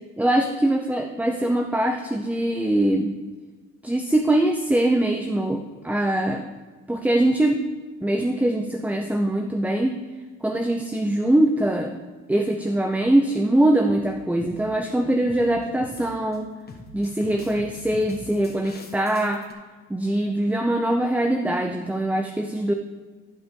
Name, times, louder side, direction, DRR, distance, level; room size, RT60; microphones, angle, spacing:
voice 1, 0.2-3.1 3.8-6.5 6.9-7.7 8.0-10.0 10.4-12.0 12.3-16.5 16.9-19.4 19.9-22.7, right 1 dB, 5° right, 5 dB, 0.6 m, -22 dB
sound 1, 12.9-13.2 13.9-14.1 14.4-14.6 15.3-15.5 15.8-16.4 16.7-19.5, left 2 dB, 30° left, 1.5 m, -43 dB
15.0 x 5.6 x 3.7 m, 1.4 s
cardioid pair, 90°, 30 cm